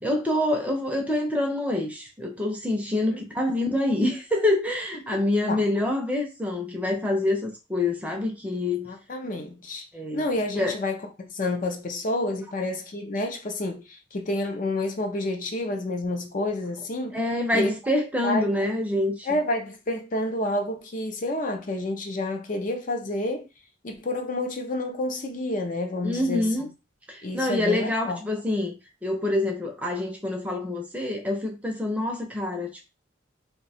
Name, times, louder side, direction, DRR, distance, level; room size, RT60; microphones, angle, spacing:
voice 1, 0.0-8.9 9.9-10.3 10.5-10.8 17.1-19.3 26.0-26.7 27.1-32.9, left 1 dB, 10° right, 0.6 m, -26 dB
voice 2, 8.9-9.9 10.1-11.0 11.3-17.2 17.5-17.7 18.2-18.5 19.3-23.4 23.8-26.5 27.2-28.2, left 1 dB, 45° left, 0.5 m, -29 dB
2.7 x 2.2 x 4.1 m
head